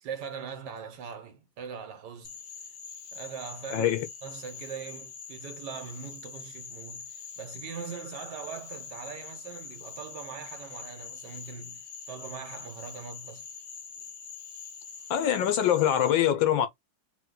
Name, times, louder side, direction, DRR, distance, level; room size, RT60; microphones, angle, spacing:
voice 1, 0.0-2.3 3.1-13.4, right 6 dB, 65° right, 1.5 m, -41 dB
Frog, 2.2-16.1, left 6 dB, 55° left, 1.4 m, -44 dB
voice 2, 3.7-4.1 15.1-16.7, left 10 dB, 80° left, 1.5 m, -24 dB
4.3 x 2.2 x 3.8 m
omnidirectional pair, 2.1 m